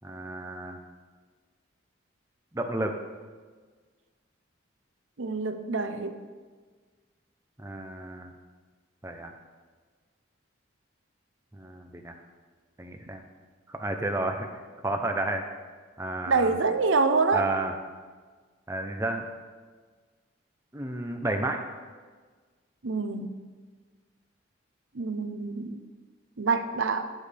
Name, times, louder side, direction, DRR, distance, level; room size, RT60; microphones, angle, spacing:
voice 1, 0.0-0.8 2.5-3.0 7.6-8.3 9.0-9.3 11.5-12.1 12.8-13.2 13.7-14.5 14.8-15.5 16.0-16.6 17.3-17.7 18.7-19.3 20.7-21.6, right 2 dB, 15° right, 4 dB, 0.8 m, -31 dB
voice 2, 5.2-6.2 16.3-17.5 22.8-23.3 24.9-25.8 26.4-27.1, right 4 dB, 75° right, 9 dB, 0.7 m, -26 dB
18.0 x 7.5 x 3.5 m, 1.5 s
head